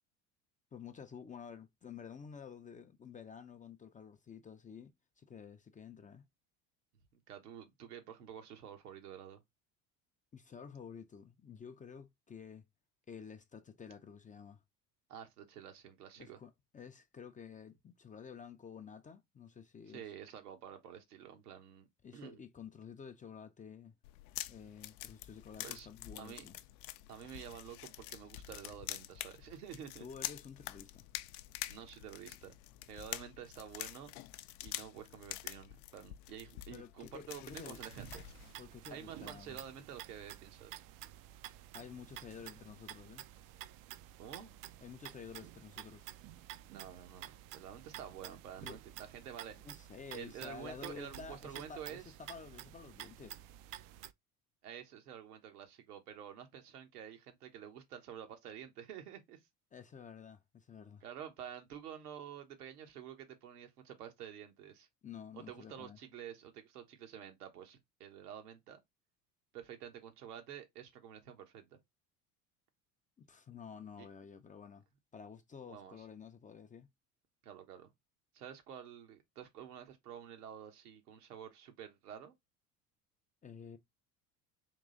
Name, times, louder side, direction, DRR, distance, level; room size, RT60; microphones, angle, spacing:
voice 1, 0.7-6.2 10.3-12.6 13.1-14.6 16.2-20.1 22.0-23.9 24.5-26.6 30.0-31.1 36.7-37.8 38.6-39.6 41.7-43.3 44.8-46.1 48.6-48.8 49.6-53.4 59.7-61.0 65.0-66.0 73.2-74.9 75.1-76.9 83.4-83.8, left 6 dB, 20° left, 0.5 m, -51 dB
voice 2, 7.1-9.4 15.1-16.4 19.9-21.9 22.1-22.4 25.6-25.9 26.1-26.4 27.1-30.1 31.7-32.5 32.9-34.1 34.6-38.2 38.9-40.8 44.2-44.5 46.7-49.6 50.1-52.1 54.6-59.4 61.0-64.9 65.3-68.8 69.5-71.8 74.0-74.1 75.7-76.0 77.4-77.9 78.3-82.3, right 9 dB, 80° right, 1.2 m, -49 dB
sound 1, 24.0-38.5, left 15 dB, 75° left, 0.5 m, -47 dB
sound 2, 37.5-54.1, right 13 dB, 45° right, 0.5 m, -51 dB
3.7 x 3.0 x 3.8 m
hypercardioid pair, 70°, 46 cm